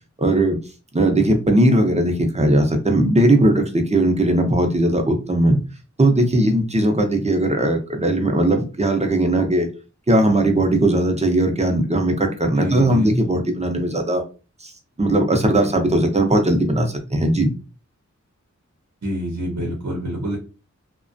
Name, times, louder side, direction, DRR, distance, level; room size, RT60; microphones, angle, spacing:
voice 1, 0.2-0.6 0.9-5.6 6.0-9.7 10.1-14.2 14.6-14.7 15.0-17.5, right 1 dB, 20° right, 4 dB, 0.6 m, -18 dB
voice 2, 12.5-13.2 19.0-20.4, equal, 65° right, -1 dB, 0.8 m, -26 dB
2.3 x 2.2 x 2.5 m, 0.33 s
wide cardioid pair, 50°, 30 cm